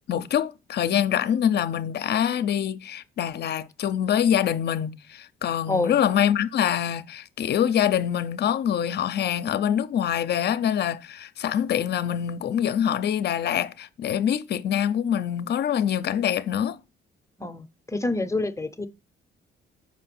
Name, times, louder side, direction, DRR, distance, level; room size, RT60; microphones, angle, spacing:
voice 1, 0.1-16.8, left 9 dB, 55° left, 0.6 m, -25 dB
voice 2, 5.7-6.0 17.4-18.9, left 2 dB, 15° left, 0.7 m, -27 dB
6.1 x 4.6 x 6.0 m
cardioid pair, 90°, 20 cm